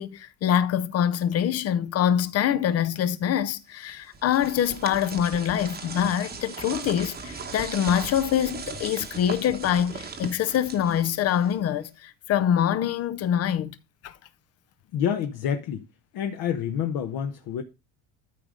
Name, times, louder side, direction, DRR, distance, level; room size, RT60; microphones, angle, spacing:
voice 1, 0.0-13.8 14.0-14.1, left 9 dB, 35° left, 0.6 m, -25 dB
sound 1, 3.9-11.7, right 4 dB, 20° right, 1.0 m, -38 dB
voice 2, 14.9-15.9 16.1-17.6, left 8 dB, 50° left, 1.0 m, -28 dB
13.0 x 5.0 x 3.8 m
cardioid pair, 160°, 47 cm